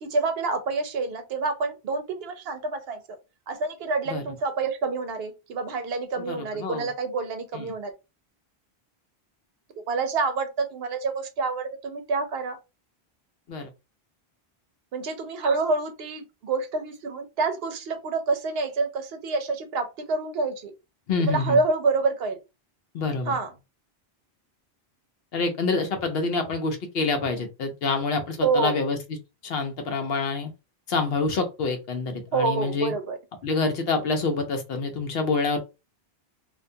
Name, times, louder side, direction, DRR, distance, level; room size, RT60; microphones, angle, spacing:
voice 1, 0.0-3.2 3.5-7.9 9.9-12.6 14.9-20.7 21.2-22.4 23.3-23.5 28.4-28.7 32.3-33.2, right 3 dB, 75° right, 0.9 m, -27 dB
voice 2, 6.2-6.9 7.5-7.7 13.5-13.7 21.1-21.6 22.9-23.4 25.3-29.0 29.4-30.5 30.9-32.9 33.4-35.6, left 3 dB, 70° left, 0.9 m, -27 dB
2.5 x 2.2 x 2.6 m
omnidirectional pair, 1.0 m